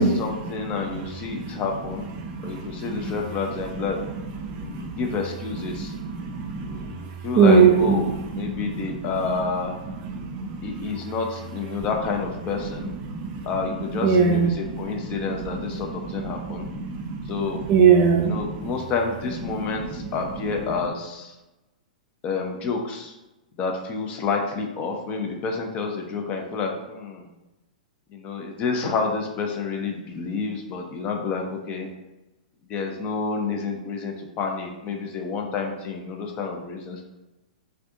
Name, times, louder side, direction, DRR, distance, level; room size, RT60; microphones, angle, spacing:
voice 1, 0.2-2.1 2.4-4.0 4.5-5.9 6.6-9.8 10.6-12.9 13.4-16.7 17.3-17.6 18.2-21.3 22.2-23.2 23.6-27.3 28.1-31.9 32.7-37.0, left 4 dB, 30° left, 2 dB, 0.5 m, -29 dB
voice 2, 2.2-3.1 4.4-5.0 5.7-6.9 7.4-9.1 10.1-10.9 13.0-13.5 14.0-14.8 15.3-15.6 16.2-18.7, right 6 dB, 35° right, 3 dB, 0.4 m, -22 dB
2.5 x 2.3 x 3.7 m, 1.0 s
figure-of-eight pair, 105°, 4 cm